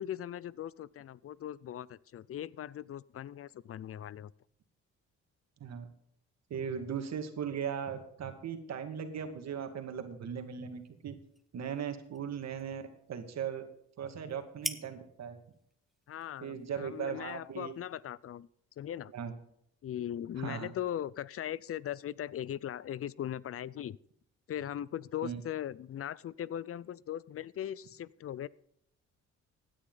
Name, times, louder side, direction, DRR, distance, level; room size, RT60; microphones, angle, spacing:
voice 1, 0.0-4.3 16.1-18.5 18.8-19.1 19.8-24.0 24.5-28.5, left 11 dB, 50° left, 22 dB, 0.5 m, -39 dB
voice 2, 6.5-11.2 11.5-12.8 13.1-13.6 14.0-15.4 16.4-17.7 19.1-19.3 20.4-20.7 25.2-25.4, right 7 dB, 60° right, 7 dB, 2.1 m, -38 dB
sound 1, 10.3-18.0, equal, ahead, 1.1 m, -48 dB
16.5 x 10.0 x 4.0 m, 0.72 s
cardioid pair, 90°, 30 cm